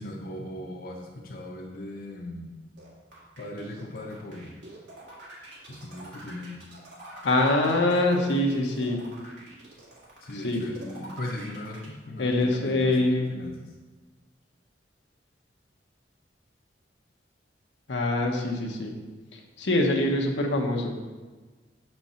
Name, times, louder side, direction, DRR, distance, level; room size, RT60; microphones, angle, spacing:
voice 1, 0.0-2.5 3.4-4.5 5.7-6.6 10.2-13.5, left 1 dB, 55° left, 0 dB, 0.7 m, -38 dB
sound 1, 2.8-11.9, right 1 dB, 85° right, 2.0 m, -45 dB
voice 2, 7.2-9.0 10.4-10.7 12.2-13.3 17.9-18.9 19.3-20.9, left 1 dB, 85° left, 2 dB, 1.0 m, -24 dB
6.4 x 4.4 x 5.6 m, 1.3 s
head